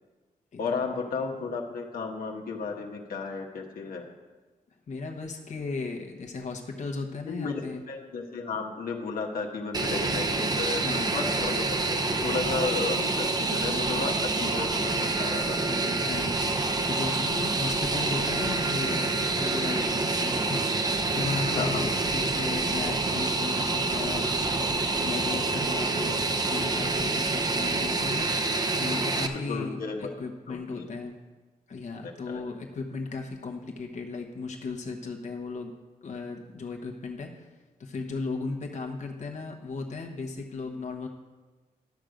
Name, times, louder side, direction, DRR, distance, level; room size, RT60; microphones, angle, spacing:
voice 1, 0.6-4.1 7.3-7.6 7.9-10.8 11.1-15.6 21.4-21.9 28.7-28.8 29.3-30.1 30.5-31.0 32.0-32.4, left 4 dB, 75° left, 1 dB, 1.2 m, -33 dB
voice 2, 4.9-7.8 10.8-11.2 15.6-28.4 28.8-31.1 31.7-35.7 36.0-37.5 37.8-41.1, left 4 dB, 55° left, 2 dB, 1.1 m, -36 dB
Fixed-wing aircraft airplane, 9.7-29.3, right 3 dB, 25° right, 0.8 m, -27 dB
12.0 x 6.4 x 5.1 m, 1.3 s
cardioid pair, 85°, 15 cm